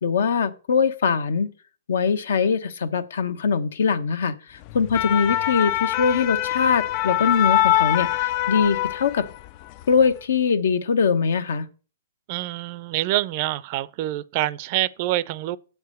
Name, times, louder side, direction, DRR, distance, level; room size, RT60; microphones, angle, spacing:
voice 1, 0.0-1.5 1.9-9.3 9.9-11.7, left 6 dB, 70° left, 0.9 m, -22 dB
sound 1, 4.7-9.5 9.8-10.1, left 14 dB, 35° left, 0.3 m, -23 dB
voice 2, 12.3-15.6, right 16 dB, 40° right, 0.4 m, -26 dB
7.5 x 4.8 x 6.4 m
hypercardioid pair, 145°, 0 cm